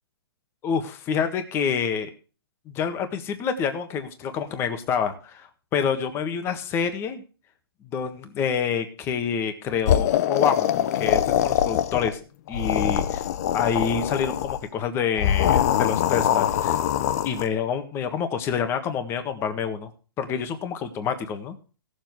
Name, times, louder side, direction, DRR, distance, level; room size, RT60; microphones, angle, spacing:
voice 1, 0.6-2.1 2.7-7.2 7.9-12.2 12.5-13.2 13.5-16.8 17.2-19.9 20.2-21.6, left 7 dB, 20° left, 9 dB, 1.6 m, -27 dB
sound 1, 9.8-12.2 12.5-14.6 15.2-17.5, left 10 dB, 40° left, 0.9 m, -23 dB
17.5 x 7.3 x 4.7 m, 0.36 s
hypercardioid pair, 160°, 14 cm